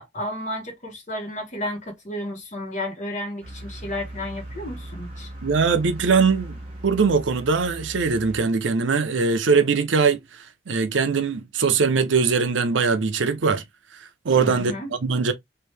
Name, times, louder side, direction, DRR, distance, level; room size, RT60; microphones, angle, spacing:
voice 1, 0.0-5.3 14.4-14.9, left 1 dB, 40° left, 1.3 m, -32 dB
sound 1, 3.4-8.4, right 1 dB, 30° right, 1.1 m, -38 dB
voice 2, 5.4-6.6 6.8-10.2 10.7-13.6 14.2-14.7 15.0-15.3, right 5 dB, 80° right, 0.6 m, -21 dB
3.0 x 2.7 x 3.2 m
head